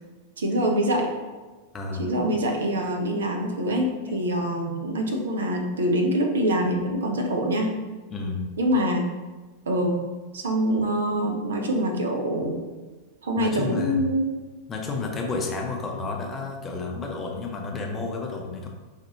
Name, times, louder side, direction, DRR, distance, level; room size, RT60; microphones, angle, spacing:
voice 1, 0.4-1.1 2.0-7.8 8.6-9.0 9.7-10.0 10.3-12.6 13.2-14.3, equal, 65° right, 2 dB, 0.6 m, -25 dB
voice 2, 1.7-2.1 3.7-3.8 4.1-4.2 8.1-8.5 13.4-14.0 14.7-18.7, left 3 dB, 20° left, 1 dB, 0.7 m, -31 dB
5.3 x 2.5 x 2.9 m, 1.3 s
figure-of-eight pair, 90°, 0 cm